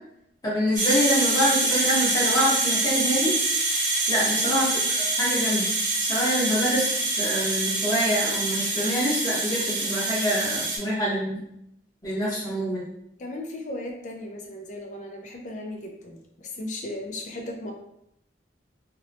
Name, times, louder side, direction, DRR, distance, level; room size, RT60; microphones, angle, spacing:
voice 1, 0.4-3.3 4.1-5.7 6.0-11.4 12.0-12.8, equal, 20° left, -9 dB, 0.9 m, -26 dB
sound 1, 0.8-10.8, right 2 dB, 50° right, 0.8 m, -25 dB
voice 2, 4.1-4.5 12.2-12.5 13.2-17.7, left 1 dB, 40° left, 2 dB, 0.4 m, -36 dB
2.8 x 2.0 x 2.6 m, 0.77 s
head